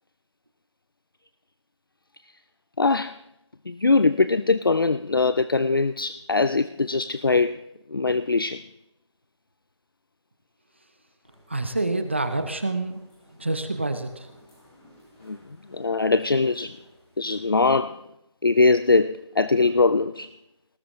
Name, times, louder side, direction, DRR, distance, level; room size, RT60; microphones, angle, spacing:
voice 1, 2.8-3.2 3.7-7.6 7.9-8.6 15.2-15.4 15.7-16.8 17.2-18.0 18.4-20.3, left 3 dB, 45° left, 14 dB, 0.4 m, -22 dB
sound 1, 11.2-17.4, equal, 20° left, 6.8 m, -55 dB
voice 2, 11.5-13.0 13.4-14.3, right 2 dB, 25° right, 9 dB, 0.7 m, -27 dB
19.0 x 15.0 x 3.1 m, 0.85 s
figure-of-eight pair, 175°, 16 cm